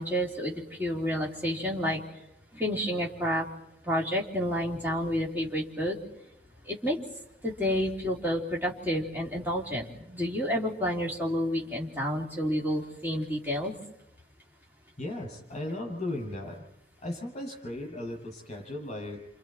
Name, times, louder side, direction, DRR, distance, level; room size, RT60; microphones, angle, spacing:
voice 1, 0.0-2.0 2.5-3.5 3.8-6.0 6.7-7.0 7.4-13.7, equal, 10° right, -2 dB, 3.5 m, -30 dB
voice 2, 15.0-16.6 17.0-19.3, left 1 dB, 40° left, 0 dB, 7.2 m, -36 dB
29.0 x 27.5 x 4.6 m, 0.81 s
head